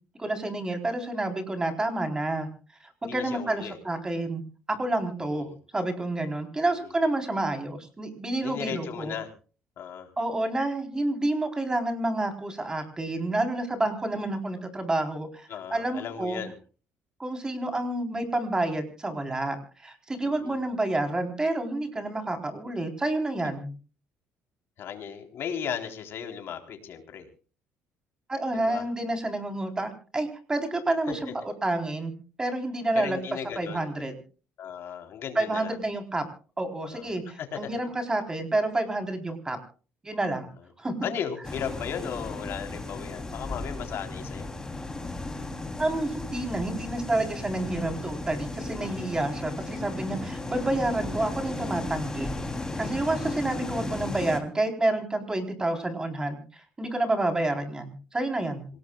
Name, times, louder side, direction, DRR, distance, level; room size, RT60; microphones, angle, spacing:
voice 1, 0.2-2.5 2.8-4.4 4.7-5.5 5.7-9.1 10.2-16.4 17.2-23.7 28.3-31.3 31.6-32.1 32.4-33.2 33.6-34.1 35.4-36.2 36.6-39.6 40.0-40.5 40.8-40.9 45.8-52.3 52.8-58.7, right 2 dB, 15° right, 5 dB, 3.8 m, -29 dB
voice 2, 3.0-3.8 5.2-5.6 6.7-6.9 8.4-9.3 9.8-10.1 15.5-16.5 20.2-20.6 24.8-27.3 28.5-28.9 31.1-31.3 32.9-33.9 34.6-35.8 36.9-37.8 41.0-44.5 48.8-49.1 53.2-53.6, left 8 dB, 55° left, 5 dB, 3.8 m, -36 dB
sound 1, 41.4-54.4, left 2 dB, 15° left, 3.2 m, -35 dB
26.5 x 18.5 x 2.4 m, 0.37 s
cardioid pair, 120°, 5 cm